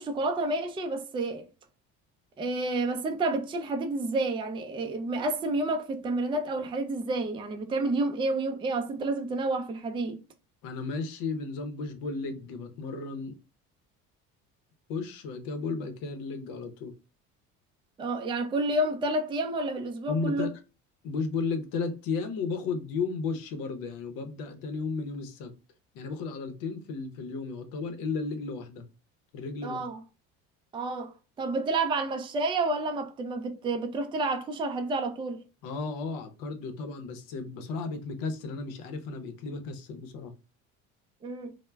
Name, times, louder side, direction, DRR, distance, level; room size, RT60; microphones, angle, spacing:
voice 1, 0.0-1.5 2.4-10.2 18.0-20.5 29.6-30.0 30.7-35.4 41.2-41.5, right 2 dB, 15° right, 0.3 m, -30 dB
voice 2, 10.6-13.4 14.9-16.9 20.1-20.5 21.0-25.5 25.9-28.9 29.3-29.9 35.6-40.3, left 4 dB, 75° left, 0.7 m, -34 dB
2.1 x 2.1 x 3.3 m
supercardioid pair, 95°, 33 cm